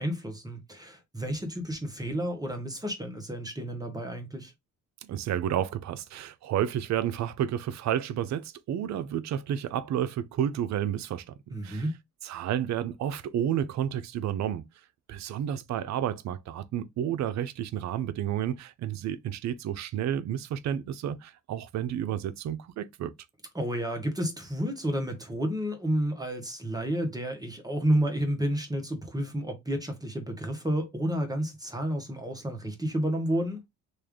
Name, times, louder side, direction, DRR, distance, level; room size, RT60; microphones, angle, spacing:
voice 1, 0.0-4.5 11.5-11.9 23.5-33.6, right 1 dB, 10° right, 0.9 m, -31 dB
voice 2, 5.0-11.3 11.6-11.8 12.2-14.6 15.1-23.1, right 10 dB, 65° right, 0.5 m, -31 dB
3.2 x 2.4 x 3.5 m
cardioid pair, 90°, 30 cm